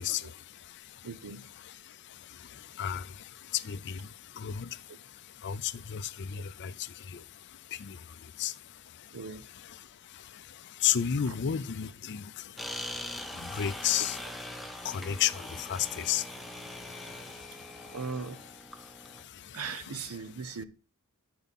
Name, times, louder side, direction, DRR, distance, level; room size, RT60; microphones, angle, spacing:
voice 1, 0.0-20.1 20.4-20.5, left 9 dB, 50° left, 0.5 m, -35 dB
voice 2, 1.0-1.4 4.9-5.0 9.1-9.5 11.3-11.4 17.9-18.4 19.5-20.6, right 5 dB, 75° right, 0.7 m, -39 dB
sound 1, 12.6-19.2, left 1 dB, ahead, 0.6 m, -42 dB
10.5 x 4.8 x 4.1 m
head